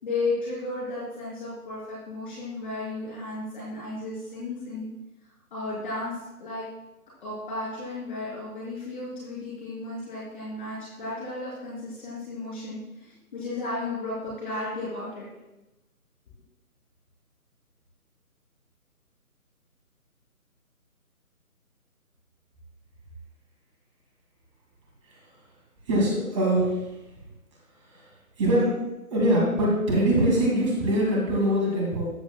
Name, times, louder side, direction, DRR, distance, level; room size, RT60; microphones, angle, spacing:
voice 1, 0.0-4.9 5.5-6.6 7.2-15.3, left 2 dB, 35° left, -6 dB, 3.2 m, -34 dB
voice 2, 25.9-26.9 27.9-28.1 28.4-28.7 29.1-32.1, right 1 dB, 20° right, -4 dB, 2.2 m, -23 dB
13.5 x 8.9 x 2.2 m, 1.0 s
figure-of-eight pair, 160°, 45 cm